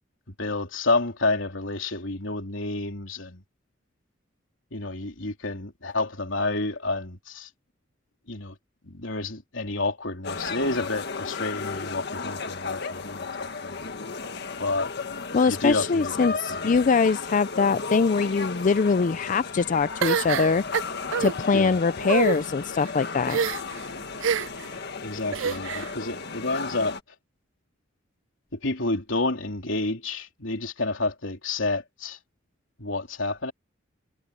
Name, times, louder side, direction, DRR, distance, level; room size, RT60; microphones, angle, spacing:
voice 1, 0.4-3.4 4.7-7.5 8.3-8.5 8.8-13.9 14.6-14.9 15.5-16.6 21.5-21.8 25.0-27.0 28.6-32.2 32.8-33.5, left 2 dB, 75° left, 3.5 m, -29 dB
sound 1, 10.2-27.0, left 4 dB, 60° left, 1.7 m, -34 dB
voice 2, 15.3-20.6 21.2-23.4, left 4 dB, 40° left, 0.4 m, -23 dB
sound 2, 20.0-21.3 22.0-22.4 23.3-23.8 24.2-24.7 25.3-25.9, right 7 dB, 70° right, 0.4 m, -26 dB
head